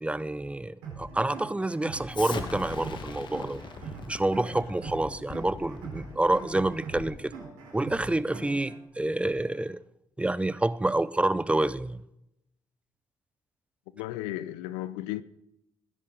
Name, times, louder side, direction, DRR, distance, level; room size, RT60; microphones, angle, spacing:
voice 1, 0.0-3.6 4.1-7.3 7.7-9.8 10.2-12.0, right 2 dB, 10° right, 0.7 m, -28 dB
sound 1, 0.8-8.8, right 5 dB, 80° right, 4.8 m, -42 dB
Explosion, 2.1-7.2, left 5 dB, 55° left, 1.6 m, -41 dB
voice 2, 13.9-15.2, left 15 dB, 75° left, 0.5 m, -34 dB
20.0 x 10.5 x 4.0 m
hypercardioid pair, 45°, 10 cm